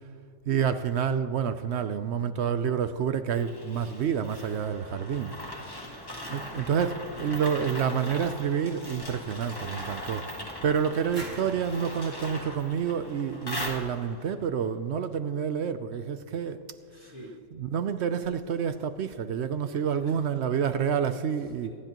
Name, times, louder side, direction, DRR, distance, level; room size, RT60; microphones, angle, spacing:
voice 1, 0.5-5.3 6.3-16.6 17.6-21.7, right 7 dB, 65° right, 11 dB, 0.8 m, -28 dB
sound 1, 3.3-14.3, left 1 dB, 15° left, 1.6 m, -40 dB
voice 2, 5.8-6.1 16.9-17.4 19.9-21.3 21.6-21.8, equal, 55° left, -4 dB, 3.0 m, -49 dB
sound 2, 11.1-13.8, right 1 dB, 35° right, 2.6 m, -46 dB
25.5 x 10.5 x 3.0 m, 2.4 s
omnidirectional pair, 1.4 m